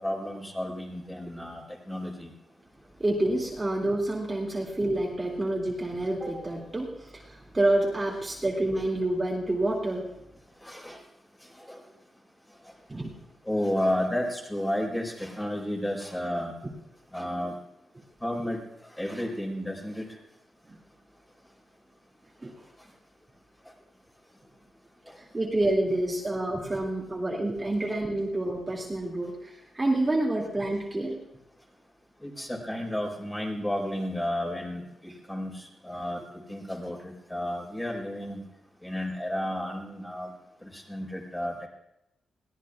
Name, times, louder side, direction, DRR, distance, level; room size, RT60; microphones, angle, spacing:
voice 1, 0.0-2.3 10.6-11.0 11.7-11.8 13.5-16.5 17.1-17.5 18.2-18.6 19.0-20.1 25.1-25.2 32.2-38.4 38.8-40.3 40.6-41.7, left 1 dB, 10° left, 0 dB, 4.3 m, -32 dB
voice 2, 3.0-10.1 12.9-13.1 20.7-20.8 22.4-22.5 25.2-31.2, right 1 dB, 20° right, -3 dB, 2.4 m, -28 dB
22.5 x 17.0 x 2.4 m, 0.86 s
cardioid pair, 105°, 0 cm